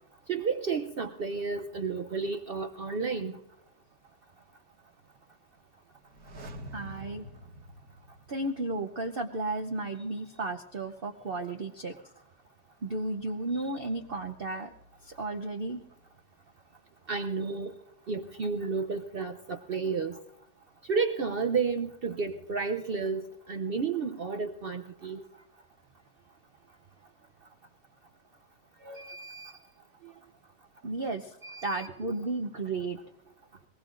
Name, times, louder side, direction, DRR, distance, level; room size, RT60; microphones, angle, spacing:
voice 1, 0.3-3.4 17.1-17.7 18.1-20.2 20.9-25.2 28.8-29.6 31.4-31.9, right 5 dB, 80° right, 8 dB, 0.5 m, -32 dB
sound 1, 6.0-8.9 9.2-9.3, right 1 dB, 65° right, 2.2 m, -46 dB
voice 2, 6.7-7.2 8.3-11.9 12.8-14.7 15.0-15.8 30.8-31.3 31.6-33.0, right 2 dB, 45° right, 4 dB, 0.8 m, -33 dB
23.0 x 20.0 x 2.5 m, 0.85 s
omnidirectional pair, 1.8 m